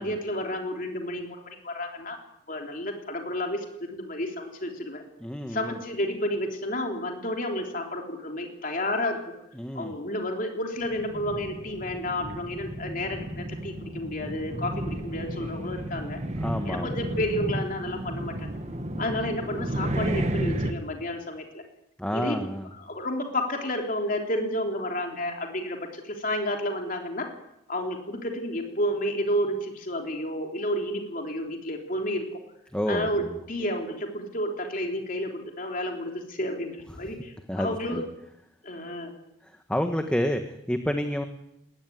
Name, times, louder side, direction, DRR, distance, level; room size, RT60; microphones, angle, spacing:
voice 1, 0.0-2.2 2.5-5.0 5.5-9.2 9.8-16.2 16.7-18.5 19.0-21.6 22.1-22.4 22.8-27.3 27.7-32.2 32.9-38.0 38.6-39.1, left 1 dB, 40° left, 2 dB, 3.5 m, -31 dB
voice 2, 5.2-5.8 9.6-9.9 16.4-17.0 22.0-22.7 32.7-33.3 37.5-38.0 39.4-41.2, equal, 5° left, 5 dB, 1.3 m, -29 dB
sound 1, 10.8-20.7, right 1 dB, 35° right, 1.7 m, -32 dB
20.5 x 19.5 x 9.4 m, 0.82 s
head